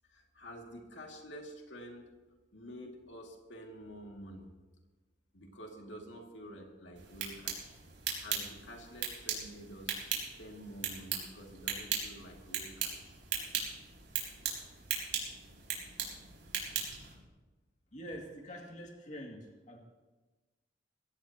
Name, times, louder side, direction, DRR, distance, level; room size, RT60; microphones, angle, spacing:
voice 1, 0.1-2.1 2.5-4.5 5.3-7.8 8.2-9.9 10.4-13.2, equal, 80° left, 1 dB, 2.3 m, -49 dB
sound 1, 7.0-17.1, right 7 dB, 85° right, 5.0 m, -39 dB
voice 2, 17.9-19.8, equal, 40° left, 0 dB, 2.4 m, -45 dB
22.0 x 16.5 x 2.9 m, 1.2 s
head